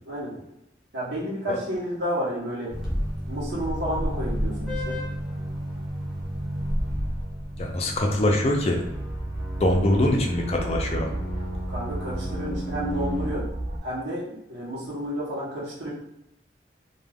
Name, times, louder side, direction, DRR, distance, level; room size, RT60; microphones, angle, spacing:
voice 1, 0.9-2.7 3.3-5.0 11.7-13.5 13.8-15.9, equal, 75° right, -6 dB, 0.8 m, -31 dB
sound 1, 2.7-13.3, equal, ahead, 0.7 m, -32 dB
sound 2, 3.6-4.9 5.6-13.8, right 1 dB, 35° right, 0.4 m, -35 dB
voice 2, 7.6-8.8 9.6-11.1, left 1 dB, 35° left, 1 dB, 0.4 m, -23 dB
2.3 x 2.2 x 3.3 m, 0.84 s
head